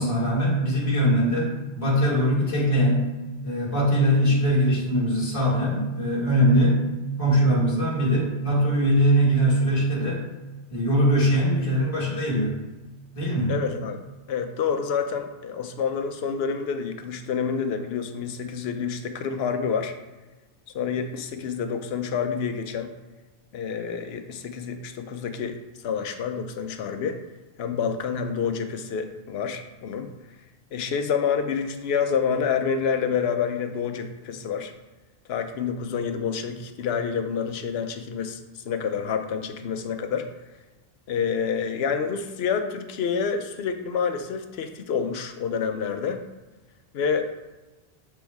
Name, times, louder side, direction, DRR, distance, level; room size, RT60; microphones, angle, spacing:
voice 1, 0.0-3.1 3.4-6.8 7.2-10.2 10.7-12.6 13.1-13.5, equal, 35° left, -6 dB, 1.6 m, -21 dB
voice 2, 13.5-14.0 14.3-19.9 20.7-22.9 23.5-25.6 25.8-27.2 27.6-30.1 30.7-34.7 35.3-40.3 41.1-46.2 46.9-47.2, left 6 dB, 80° left, 7 dB, 0.9 m, -28 dB
6.2 x 4.6 x 3.5 m, 1.1 s
omnidirectional pair, 1.0 m